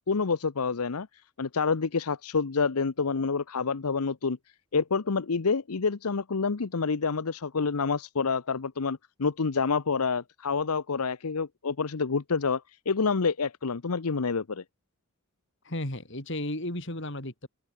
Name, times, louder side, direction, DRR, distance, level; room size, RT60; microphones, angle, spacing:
voice 1, 0.1-1.1 1.4-4.4 4.7-14.6, left 5 dB, 85° left, 0.8 m, -28 dB
voice 2, 15.6-17.5, left 1 dB, 55° left, 4.3 m, -34 dB
head